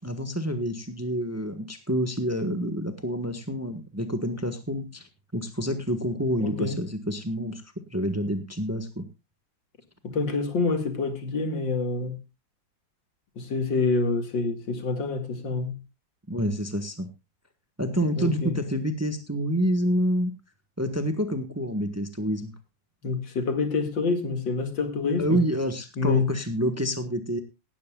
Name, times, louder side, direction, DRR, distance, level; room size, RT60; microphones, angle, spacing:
voice 1, 0.0-5.1 5.3-7.6 7.9-9.0 16.3-17.1 17.8-20.3 20.8-22.5 25.2-27.4, equal, 10° right, 1.2 m, -28 dB
voice 2, 6.4-6.8 10.0-12.2 13.4-15.8 18.2-18.6 23.0-25.4 26.0-26.3, left 4 dB, 80° left, 2.8 m, -27 dB
17.5 x 13.0 x 2.3 m
omnidirectional pair, 2.0 m